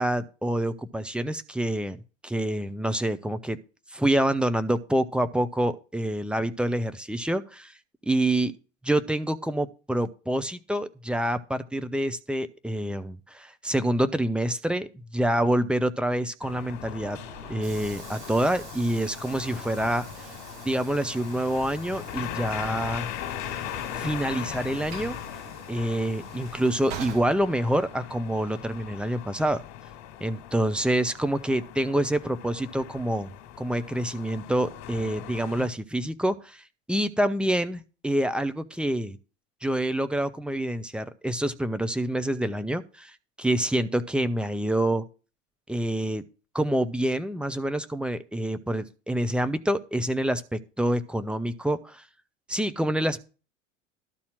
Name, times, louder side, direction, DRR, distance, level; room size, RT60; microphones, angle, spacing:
voice 1, 0.0-3.6 3.9-7.7 8.1-8.5 8.8-17.2 17.5-20.3 20.6-23.1 24.0-25.2 25.7-29.6 30.2-33.3 33.6-39.2 39.6-45.0 45.7-46.2 46.5-52.0 52.5-53.2, right 1 dB, 5° right, 10 dB, 0.7 m, -27 dB
sound 1, 16.4-35.7, left 11 dB, 50° left, 1.8 m, -39 dB
Train / Sliding door, 16.7-28.1, right 7 dB, 60° right, 1.9 m, -45 dB
12.5 x 4.3 x 7.5 m, 0.34 s
figure-of-eight pair, 75°, 37 cm